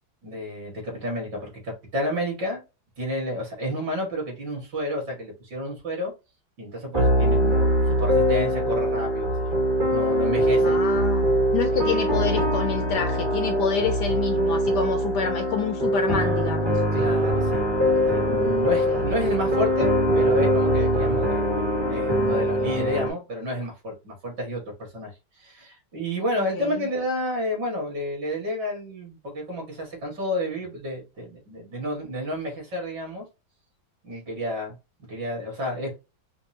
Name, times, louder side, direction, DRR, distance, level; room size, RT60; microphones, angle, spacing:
voice 1, 0.2-2.6 3.0-6.1 6.6-9.6 9.9-10.8 11.7-11.8 16.9-17.7 18.1-24.6 24.9-25.1 25.4-33.2 34.0-34.8 35.1-35.9, equal, 60° right, 2.4 m, -30 dB
sound 1, 6.9-23.1, equal, 20° right, 0.7 m, -22 dB
voice 2, 7.4-7.8 10.6-16.8 18.9-19.1 26.3-26.8, left 7 dB, 70° left, 1.0 m, -29 dB
5.2 x 2.2 x 2.7 m
omnidirectional pair, 2.1 m